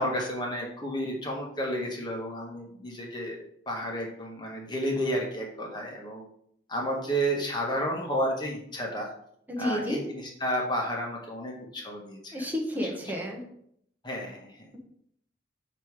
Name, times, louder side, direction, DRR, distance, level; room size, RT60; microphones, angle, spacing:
voice 1, 0.0-3.4 3.7-6.2 6.7-9.1 9.6-12.4 14.0-14.7, equal, 25° left, -1 dB, 1.3 m, -31 dB
voice 2, 9.5-10.0 12.3-13.4, left 1 dB, 10° right, 0 dB, 1.0 m, -31 dB
6.6 x 3.0 x 4.8 m, 0.70 s
head